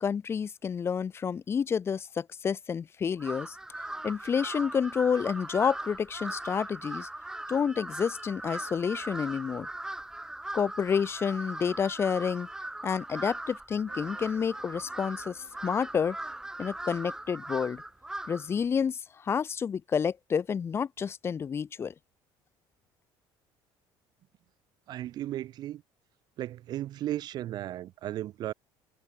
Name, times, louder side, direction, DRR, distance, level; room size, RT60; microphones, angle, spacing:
voice 1, 0.0-3.6 4.0-7.1 7.5-9.7 10.5-12.5 12.8-16.2 16.6-17.8 18.3-21.9, left 7 dB, 25° left, 0.7 m, -29 dB
Crow, 3.2-18.6, right 1 dB, 5° right, 3.0 m, -39 dB
sound 1, 13.9-18.2, right 20 dB, 75° right, 5.7 m, -59 dB
voice 2, 24.9-25.8 26.4-28.5, right 13 dB, 45° right, 0.5 m, -35 dB
cardioid pair, 150°, 10 cm